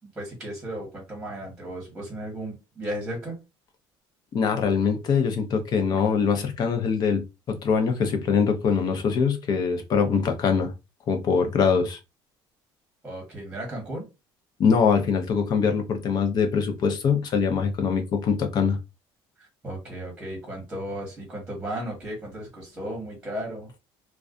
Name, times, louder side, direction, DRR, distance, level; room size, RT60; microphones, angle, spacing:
voice 1, 0.0-3.4 13.0-14.1 19.4-23.8, right 1 dB, 10° right, 1.1 m, -35 dB
voice 2, 4.3-10.7 11.1-12.0 14.6-18.8, left 6 dB, 45° left, 0.6 m, -23 dB
2.4 x 2.2 x 2.4 m
cardioid pair, 135°, 10 cm